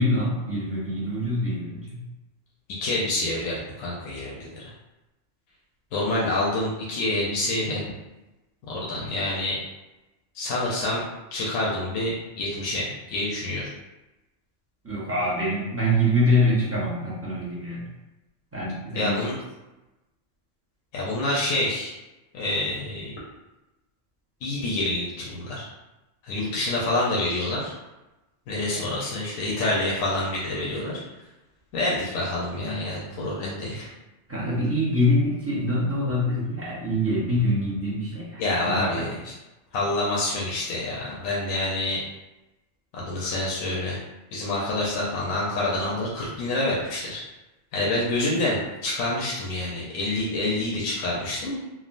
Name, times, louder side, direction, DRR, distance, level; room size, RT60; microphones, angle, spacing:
voice 1, 0.0-2.0 14.8-17.9 18.5-19.2 28.7-28.8 34.3-39.1, left 1 dB, 20° right, -7 dB, 0.4 m, -25 dB
voice 2, 2.7-4.7 5.9-8.0 8.7-9.6 10.3-11.0 11.3-13.7 18.9-19.3 20.9-21.9 22.3-23.1 24.4-25.7 26.2-27.7 28.5-31.0 31.7-33.9 38.4-39.3 39.7-42.0 42.9-44.0 44.3-47.2 47.7-51.6, left 2 dB, 90° left, -5 dB, 1.0 m, -27 dB
3.4 x 2.0 x 2.4 m, 1.0 s
omnidirectional pair, 1.4 m